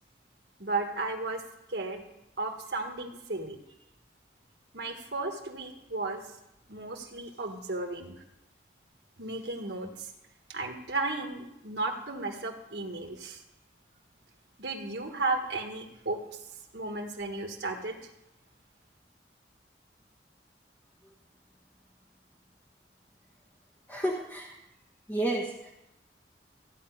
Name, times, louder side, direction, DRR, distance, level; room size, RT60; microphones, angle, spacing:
voice 1, 0.6-1.4 1.7-2.0 2.4-3.6 4.7-6.2 6.7-8.2 9.2-10.1 10.5-13.4 14.6-16.4 16.7-17.9, right 3 dB, 75° right, 4 dB, 1.6 m, -34 dB
voice 2, 23.9-24.5 25.1-25.7, right 1 dB, 10° left, -1 dB, 1.3 m, -31 dB
14.5 x 5.0 x 9.4 m, 0.87 s
head